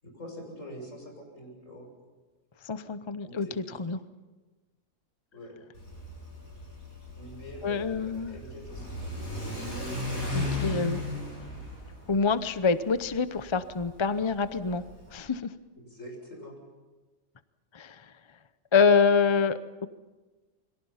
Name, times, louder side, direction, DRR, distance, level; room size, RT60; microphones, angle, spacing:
voice 1, 0.0-1.9 3.2-3.8 5.3-5.6 7.2-9.0 10.0-10.7 15.8-16.6, equal, 65° left, 1 dB, 7.1 m, -44 dB
voice 2, 2.7-3.5 3.8-4.0 7.6-8.4 10.3-11.0 12.1-14.8 15.1-15.5 17.7-18.0 18.7-19.9, left 5 dB, 30° left, 12 dB, 0.6 m, -26 dB
Car / Accelerating revving vroom, 5.8-15.2, left 2 dB, 90° left, 7.9 m, -36 dB
28.5 x 23.0 x 5.7 m, 1.2 s
omnidirectional pair, 1.5 m